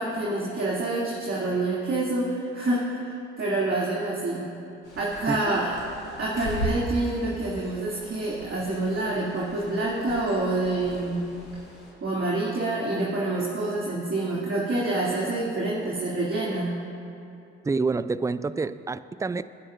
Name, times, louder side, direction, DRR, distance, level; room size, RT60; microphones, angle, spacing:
voice 1, 0.0-4.5 5.0-5.7 6.2-11.3 12.0-16.7, right 2 dB, 40° right, -6 dB, 2.8 m, -27 dB
Bird, 4.8-11.9, equal, 85° left, 2.5 m, -38 dB
voice 2, 17.6-19.4, right 4 dB, 10° right, 14 dB, 0.4 m, -27 dB
27.5 x 9.7 x 2.6 m, 2.6 s
figure-of-eight pair, 45°, 34 cm